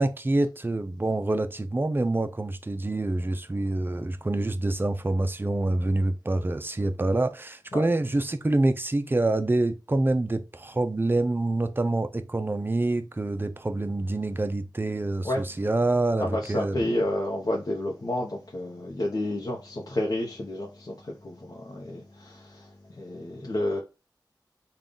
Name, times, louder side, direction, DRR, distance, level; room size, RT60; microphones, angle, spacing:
voice 1, 0.0-16.9, right 2 dB, 30° right, 0.4 m, -26 dB
voice 2, 16.2-23.8, left 1 dB, 55° left, 0.7 m, -30 dB
3.7 x 2.3 x 3.7 m
wide cardioid pair, 70°, 8 cm